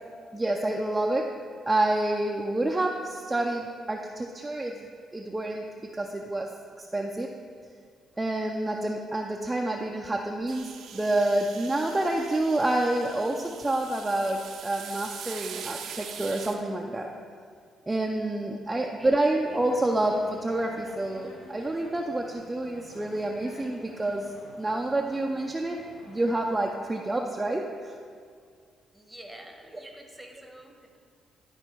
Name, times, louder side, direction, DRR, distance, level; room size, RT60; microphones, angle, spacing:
voice 1, 0.3-1.3 1.7-4.9 5.1-5.7 5.9-7.3 8.2-17.1 17.9-24.3 24.6-27.9 29.7-29.8, right 1 dB, 15° right, 0 dB, 0.5 m, -28 dB
sound 1, 10.5-16.6, right 7 dB, 80° right, 0.7 m, -42 dB
sound 2, 19.4-26.7, left 1 dB, 75° left, 1.4 m, -49 dB
voice 2, 28.9-31.0, right 1 dB, ahead, 2 dB, 1.1 m, -48 dB
12.0 x 4.4 x 4.5 m, 2.1 s
cardioid pair, 90°, 0 cm